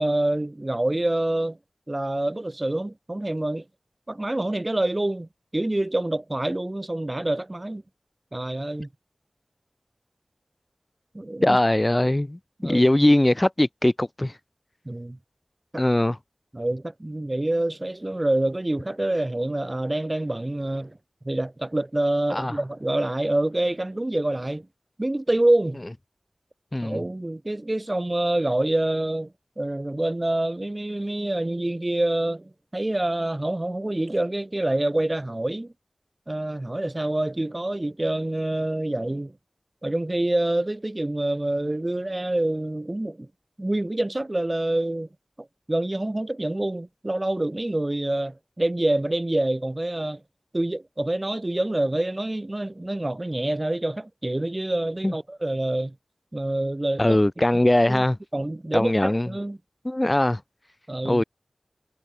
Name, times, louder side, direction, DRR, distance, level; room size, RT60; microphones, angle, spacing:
voice 1, 0.0-1.6 1.9-3.6 4.1-7.8 8.3-8.9 11.1-11.6 12.6-12.8 14.9-15.2 15.7-15.8 16.5-21.0 21.2-24.7 25.0-25.8 26.8-29.3 29.6-35.7 36.3-39.3 39.8-43.3 43.6-45.1 45.4-50.2 50.5-55.9 56.3-57.2 57.9-58.0 58.3-59.6 60.9-61.2, right 1 dB, 30° right, 1.1 m, -26 dB
voice 2, 11.4-14.3 15.8-16.2 22.3-22.5 26.7-27.0 55.0-55.1 57.0-58.2 58.7-59.3 59.8-60.4 61.0-61.2, left 1 dB, 25° left, 1.0 m, -21 dB
wide cardioid pair, 70°, 0 cm